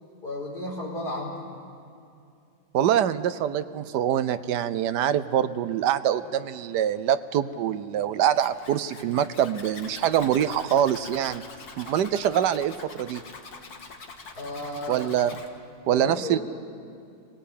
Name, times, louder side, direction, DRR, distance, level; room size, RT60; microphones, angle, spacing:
voice 1, 0.2-1.4 14.3-15.1 15.9-16.4, left 1 dB, 25° left, -3 dB, 4.7 m, -34 dB
voice 2, 2.7-11.4 11.8-13.2 14.9-15.3 15.9-16.4, right 10 dB, 65° right, 13 dB, 1.2 m, -24 dB
Zipper (clothing), 8.3-15.5, left 4 dB, 55° left, 2.1 m, -44 dB
26.0 x 17.5 x 8.6 m, 2.5 s
omnidirectional pair, 2.1 m